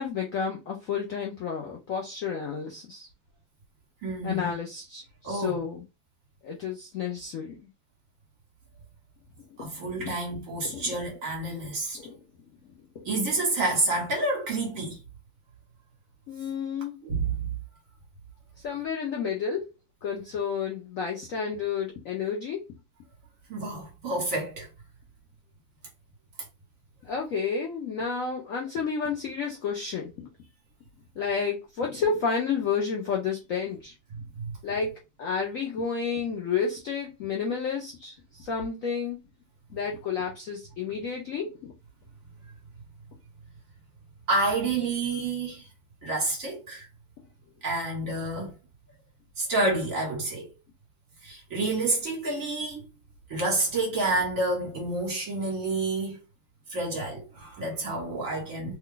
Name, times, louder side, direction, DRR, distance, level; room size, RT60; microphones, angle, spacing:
voice 1, 0.0-3.1 4.2-5.8 6.4-7.6 9.5-9.7 10.7-11.0 11.9-12.2 12.9-13.1 16.3-17.0 18.6-19.7 20.0-22.6 27.0-30.3 31.2-33.9 34.6-34.9 35.2-39.2 39.7-41.7, left 6 dB, 65° left, 0.8 m, -31 dB
voice 2, 4.0-4.5 5.2-5.6 9.6-12.0 13.0-15.0 17.0-17.5 23.5-24.7 34.4-34.5 44.3-45.7 46.0-46.9 47.6-48.5 49.4-50.5 51.2-52.8 53.3-56.2 56.7-58.8, right 2 dB, 45° right, 1.5 m, -29 dB
3.2 x 2.3 x 3.7 m
omnidirectional pair, 2.1 m